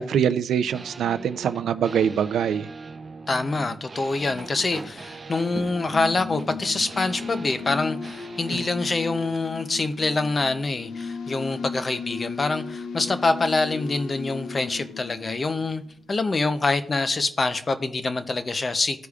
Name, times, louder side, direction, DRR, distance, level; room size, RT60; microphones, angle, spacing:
voice 1, 0.0-2.7 8.5-8.6, right 8 dB, 75° right, 0.4 m, -24 dB
sound 1, 0.7-9.4, right 4 dB, 30° right, 0.6 m, -41 dB
voice 2, 3.3-15.8 16.1-19.1, left 3 dB, 30° left, 0.5 m, -25 dB
sound 2, 4.3-8.2 9.1-9.2 9.5-9.9, right 3 dB, 45° right, 1.6 m, -42 dB
sound 3, 5.7-16.2, left 5 dB, 80° left, 0.8 m, -36 dB
14.5 x 4.8 x 2.4 m
cardioid pair, 130°, 0 cm